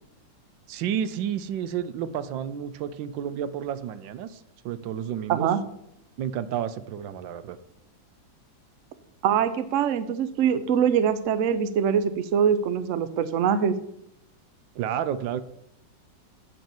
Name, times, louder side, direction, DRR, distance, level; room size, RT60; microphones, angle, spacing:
voice 1, 0.7-5.5 6.2-7.6 14.7-15.4, right 9 dB, 85° right, 13 dB, 1.4 m, -31 dB
voice 2, 5.3-5.6 9.2-13.7, right 8 dB, 60° right, 12 dB, 0.9 m, -23 dB
8.6 x 5.5 x 7.1 m, 0.79 s
omnidirectional pair, 2.0 m